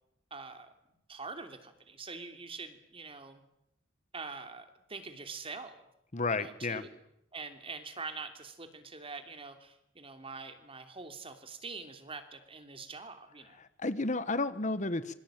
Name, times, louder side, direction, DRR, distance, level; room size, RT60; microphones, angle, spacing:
voice 1, 0.3-0.7 1.1-3.4 4.1-5.8 6.3-7.0 7.3-13.6, right 4 dB, 30° right, 8 dB, 3.0 m, -44 dB
voice 2, 6.1-6.8 13.8-15.1, left 3 dB, 40° left, 14 dB, 1.3 m, -32 dB
26.0 x 24.0 x 9.1 m, 0.80 s
head